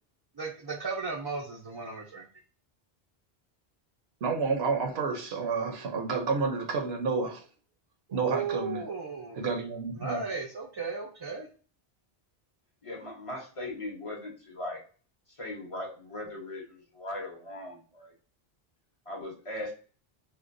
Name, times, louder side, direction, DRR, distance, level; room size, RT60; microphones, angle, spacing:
voice 1, 0.4-2.3 8.1-9.4 10.0-11.5, right 4 dB, 40° right, 0.3 m, -35 dB
voice 2, 4.2-7.4 8.1-8.9 9.4-10.2, right 4 dB, 75° right, 0.9 m, -30 dB
voice 3, 12.8-14.8 15.3-18.1 19.1-19.7, left 1 dB, 35° left, 0.7 m, -39 dB
4.4 x 2.2 x 2.5 m
omnidirectional pair, 1.1 m